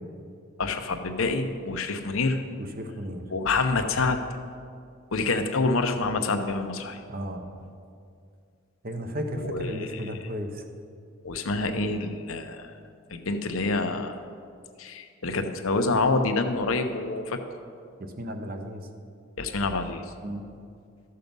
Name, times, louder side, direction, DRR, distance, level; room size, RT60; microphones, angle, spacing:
voice 1, 0.6-2.4 3.3-4.2 5.1-7.0 9.3-10.0 11.2-12.7 13.1-14.2 14.8-17.4 19.4-20.0, left 3 dB, 85° left, 6 dB, 0.8 m, -27 dB
voice 2, 2.6-3.3 7.1-7.5 8.8-10.6 18.0-18.9 20.2-20.5, equal, 45° right, 5 dB, 0.9 m, -34 dB
13.5 x 6.6 x 5.4 m, 2.3 s
head